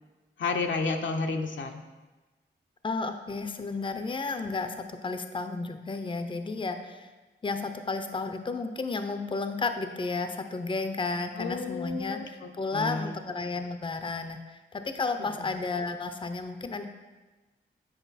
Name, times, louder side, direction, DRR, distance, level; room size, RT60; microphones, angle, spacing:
voice 1, 0.4-1.8 11.4-13.1 15.2-15.5, left 4 dB, 70° left, 4 dB, 0.7 m, -32 dB
voice 2, 2.8-7.1 7.4-16.8, left 3 dB, 25° left, 8 dB, 0.6 m, -32 dB
8.3 x 5.0 x 4.1 m, 1.2 s
cardioid pair, 55°, 20 cm